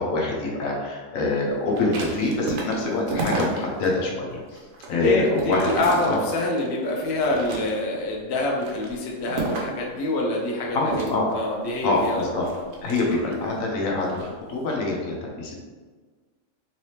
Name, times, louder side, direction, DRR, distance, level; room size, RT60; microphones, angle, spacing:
voice 1, 0.0-4.6 4.9-5.7 6.0-6.2 10.7-11.3 11.8-12.4 12.8-15.6, left 3 dB, 90° left, -2 dB, 1.1 m, -25 dB
sound 1, 1.7-3.9 4.3-6.7 7.1-8.0 8.5-9.9 10.8-13.5 14.0-14.3, right 3 dB, 85° right, 1.1 m, -32 dB
voice 2, 4.9-11.0 11.3-12.3 13.1-13.3, left 2 dB, 60° left, -1 dB, 0.9 m, -26 dB
3.3 x 3.2 x 2.8 m, 1.4 s
omnidirectional pair, 1.4 m